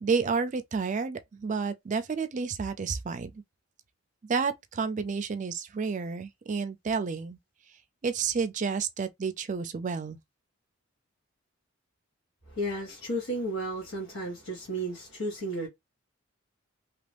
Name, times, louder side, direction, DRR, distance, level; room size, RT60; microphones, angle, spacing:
voice 1, 0.0-3.3 4.2-7.4 8.0-10.2, right 5 dB, 35° right, 0.4 m, -30 dB
voice 2, 12.5-15.7, right 1 dB, 80° left, 1.4 m, -33 dB
2.9 x 2.5 x 3.3 m
head